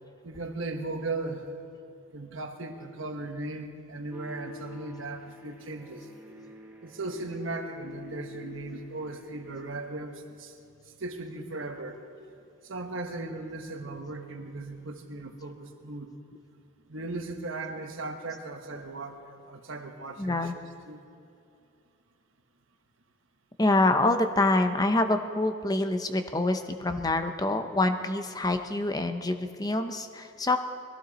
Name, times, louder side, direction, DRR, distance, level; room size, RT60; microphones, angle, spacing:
voice 1, 0.2-1.5 2.1-6.1 6.8-10.5 11.0-12.0 12.6-16.1 16.9-20.5 20.9-21.0, right 2 dB, 70° right, 4 dB, 1.3 m, -37 dB
sound 1, 4.1-9.9, left 3 dB, 10° right, 1.1 m, -47 dB
voice 2, 20.2-20.5 23.6-30.6, left 2 dB, 20° left, 7 dB, 0.7 m, -26 dB
22.0 x 15.0 x 4.2 m, 2.5 s
head